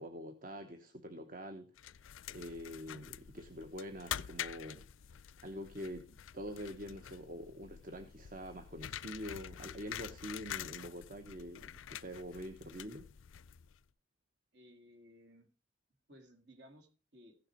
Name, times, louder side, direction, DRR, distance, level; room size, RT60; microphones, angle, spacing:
voice 1, 0.0-1.7 2.3-4.9 5.4-6.1 6.3-13.1, equal, 45° right, 1.0 m, -45 dB
sound 1, 1.8-13.8, left 10 dB, 90° left, 0.4 m, -47 dB
voice 2, 14.5-15.5 16.1-17.4, equal, 60° right, 2.2 m, -59 dB
15.5 x 6.5 x 4.5 m
head